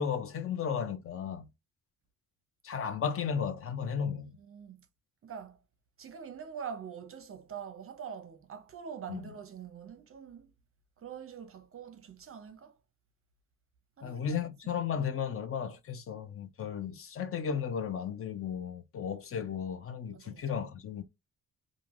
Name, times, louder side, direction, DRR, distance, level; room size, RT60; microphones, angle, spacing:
voice 1, 0.0-1.5 2.6-4.4 9.1-9.2 14.0-21.0, left 7 dB, 40° left, 0.5 m, -34 dB
voice 2, 4.4-4.9 5.2-5.6 6.0-10.5 11.0-12.8 14.0-14.7 20.1-20.4, right 7 dB, 40° right, 0.6 m, -44 dB
3.1 x 2.5 x 2.4 m
cardioid pair, 125°, 34 cm